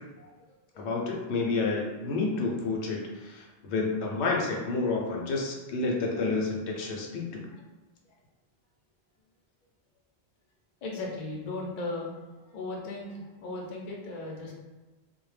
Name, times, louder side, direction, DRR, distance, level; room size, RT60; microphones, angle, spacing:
voice 1, 0.2-0.9 2.1-2.2 7.5-7.6 8.1-8.2 10.8-12.1 12.4-14.5, left 2 dB, 50° left, -2 dB, 0.6 m, -37 dB
voice 2, 0.8-7.4, left 3 dB, 90° left, -1 dB, 0.9 m, -30 dB
2.2 x 2.0 x 3.2 m, 1.2 s
omnidirectional pair, 1.1 m